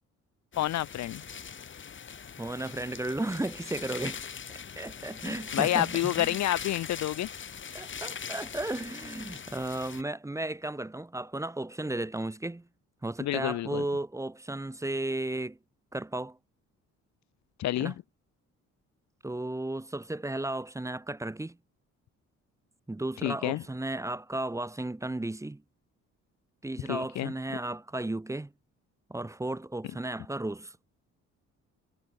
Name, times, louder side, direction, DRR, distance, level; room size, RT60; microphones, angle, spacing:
sound 1, 0.5-10.0, left 7 dB, 40° left, 1.9 m, -41 dB
voice 1, 0.6-1.2 5.3-7.3 13.2-13.8 17.6-17.9 23.2-23.6 26.9-27.3, left 14 dB, 65° left, 0.7 m, -29 dB
voice 2, 2.4-4.2 4.8-6.4 7.7-12.7 13.0-15.6 15.9-16.4 17.8-18.0 19.2-21.6 22.9-25.6 26.6-28.5 29.1-30.8, right 2 dB, 10° right, 1.1 m, -34 dB
cardioid pair, 90°, 30 cm